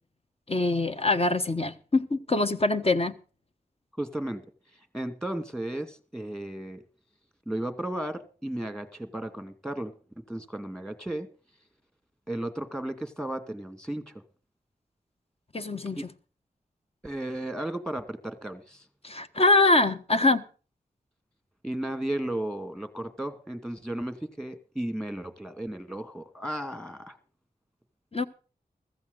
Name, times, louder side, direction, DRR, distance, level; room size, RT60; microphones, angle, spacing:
voice 1, 0.5-3.1 15.5-16.1 19.0-20.4 28.1-28.2, left 2 dB, 40° left, 9 dB, 1.3 m, -24 dB
voice 2, 4.0-4.5 4.9-6.8 7.5-9.9 10.3-11.3 12.3-14.1 16.0-16.1 17.0-18.8 21.6-27.2, right 1 dB, 5° left, 9 dB, 2.3 m, -34 dB
15.0 x 14.0 x 4.1 m, 0.38 s
cardioid pair, 50°, 16 cm